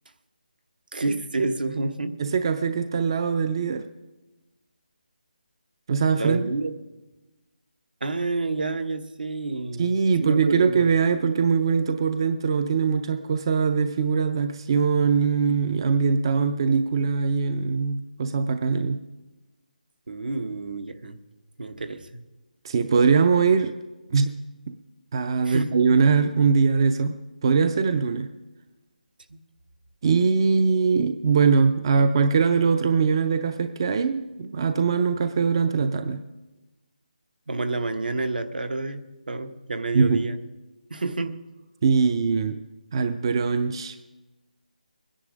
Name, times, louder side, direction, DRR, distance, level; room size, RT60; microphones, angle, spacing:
voice 1, 0.9-2.2 6.1-6.7 8.0-9.9 10.2-10.9 20.1-21.2 21.6-22.2 25.4-25.8 29.3-29.4 37.5-40.4 40.9-41.4, right 3 dB, 75° right, 8 dB, 1.1 m, -29 dB
voice 2, 2.2-3.9 5.9-6.4 9.8-19.0 22.6-23.8 24.1-24.3 24.7-24.8 25.1-27.1 27.4-28.3 30.0-36.2 39.9-40.2 41.8-42.6 42.9-44.0, right 5 dB, 30° right, 10 dB, 0.5 m, -22 dB
22.0 x 10.0 x 5.1 m, 1.1 s
figure-of-eight pair, 165°, 5 cm